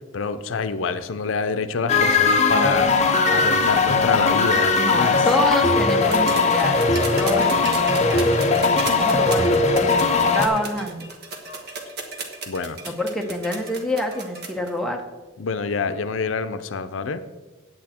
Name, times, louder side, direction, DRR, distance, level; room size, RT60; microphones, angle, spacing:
voice 1, 0.1-2.9 3.3-5.2 12.5-12.8 15.4-17.2, left 5 dB, 80° left, 12 dB, 0.5 m, -26 dB
sound 1, 1.9-10.5, left 4 dB, 35° left, 0.7 m, -19 dB
voice 2, 3.2-3.7 4.8-6.9 7.2-11.1 12.9-15.0, left 1 dB, ahead, 1 dB, 0.9 m, -27 dB
sound 2, 6.0-14.7 15.9-16.0, right 3 dB, 55° right, 1.4 m, -34 dB
8.9 x 8.6 x 4.3 m, 1.2 s
head